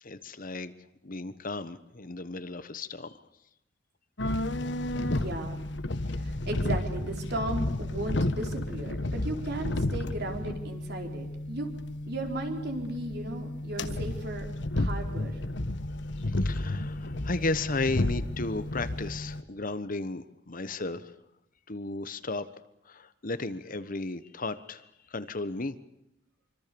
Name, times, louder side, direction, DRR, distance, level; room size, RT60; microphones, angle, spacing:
voice 1, 0.0-0.7 1.0-3.2 16.3-21.1 21.7-22.4 22.8-24.8 25.1-25.7, left 2 dB, 45° left, 13 dB, 1.2 m, -34 dB
sound 1, 4.2-19.4, left 1 dB, 65° left, 1.4 m, -32 dB
voice 2, 5.0-5.6 6.1-11.7 12.1-14.5 14.7-15.4, right 1 dB, 55° right, 4 dB, 4.5 m, -36 dB
26.0 x 25.0 x 7.0 m, 0.82 s
head